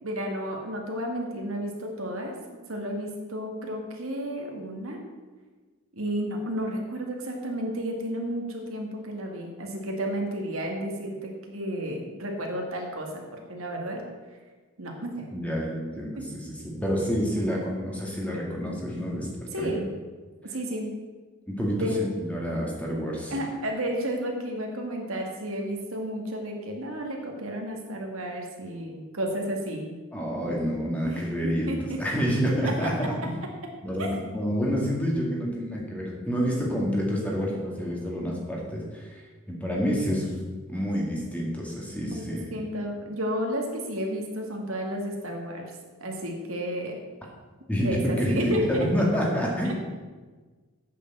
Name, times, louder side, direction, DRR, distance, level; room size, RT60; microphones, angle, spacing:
voice 1, 0.0-5.0 5.9-14.0 14.8-15.3 16.2-16.3 16.9-17.0 19.5-19.9 20.5-20.9 21.8-22.0 23.3-29.9 31.1-32.0 32.8-32.9 34.0-34.1 42.2-45.7 46.0-46.9 47.8-48.9 49.6-49.7, equal, 80° right, 1 dB, 2.0 m, -32 dB
voice 2, 15.3-19.3 19.6-19.7 21.5-23.3 30.1-33.3 33.8-40.4 40.7-42.5 47.7-49.8, equal, 5° left, -3 dB, 1.9 m, -28 dB
8.4 x 6.7 x 7.6 m, 1.3 s
head